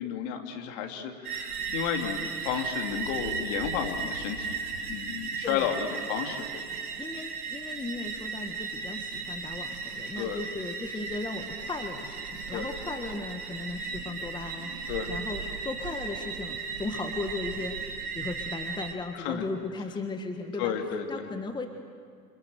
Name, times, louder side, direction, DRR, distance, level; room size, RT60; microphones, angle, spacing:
voice 1, 0.0-4.6 4.9-6.6 10.2-10.4 12.5-12.7 14.9-15.1 19.1-19.4 20.6-21.3, left 8 dB, 50° left, 4 dB, 3.0 m, -32 dB
sound 1, 1.2-18.9, right 5 dB, 65° right, 2.6 m, -36 dB
voice 2, 7.0-17.8 18.1-20.7 21.1-21.7, left 3 dB, 10° left, 6 dB, 1.5 m, -36 dB
28.0 x 26.0 x 7.8 m, 2.2 s
figure-of-eight pair, 95°, 48 cm